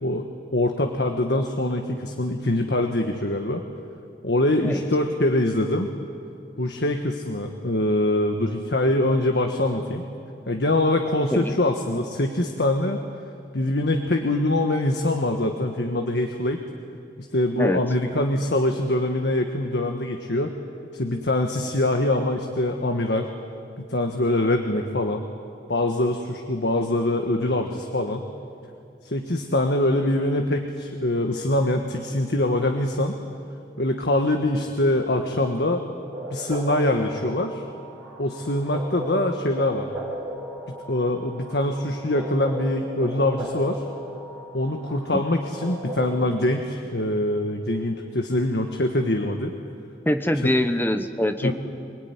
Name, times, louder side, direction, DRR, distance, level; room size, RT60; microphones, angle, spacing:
voice 1, 0.0-3.6 4.2-5.9 6.6-10.0 10.5-13.0 13.5-16.6 17.3-20.5 20.9-23.3 23.8-25.2 25.7-28.3 29.0-33.2 33.8-35.8 36.3-37.6 38.2-39.9 40.7-43.8 44.5-49.5 51.4-51.5, left 1 dB, 80° left, 4 dB, 1.5 m, -24 dB
sound 1, 36.1-46.4, equal, 15° right, 5.2 m, -36 dB
voice 2, 50.1-51.5, left 1 dB, 10° left, 8 dB, 1.1 m, -23 dB
25.0 x 20.5 x 9.7 m, 2.5 s
head